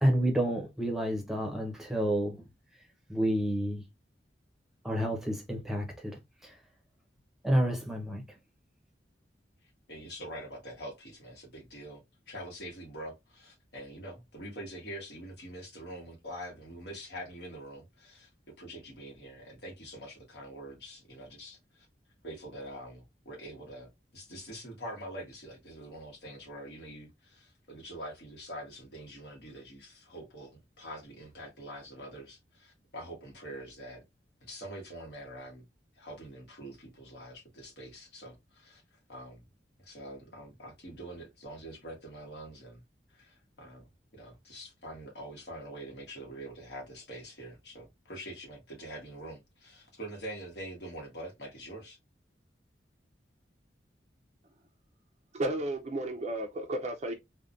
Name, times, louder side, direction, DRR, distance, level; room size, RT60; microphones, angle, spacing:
voice 1, 0.0-2.4 3.1-3.8 4.8-6.6 7.4-8.3, equal, ahead, 0.7 m, -29 dB
voice 2, 9.9-12.0 12.3-21.6 22.2-34.0 34.4-35.6 36.0-38.8 39.1-39.4 39.8-42.8 43.1-43.9 44.2-52.0, right 1 dB, 65° left, 1.3 m, -45 dB
voice 3, 55.3-57.1, right 1 dB, 40° right, 0.4 m, -33 dB
3.5 x 2.2 x 2.5 m
head